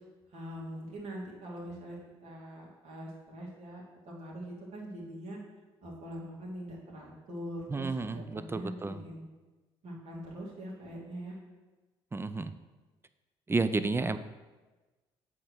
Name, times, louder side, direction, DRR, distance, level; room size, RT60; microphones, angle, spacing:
voice 1, 0.3-5.4 5.8-9.2 9.8-11.4, equal, 55° right, -3 dB, 2.5 m, -43 dB
voice 2, 7.7-9.0 12.1-12.5 13.5-14.2, right 3 dB, 20° right, 12 dB, 0.5 m, -31 dB
7.7 x 3.7 x 6.2 m, 1.2 s
hypercardioid pair, 50°, 13 cm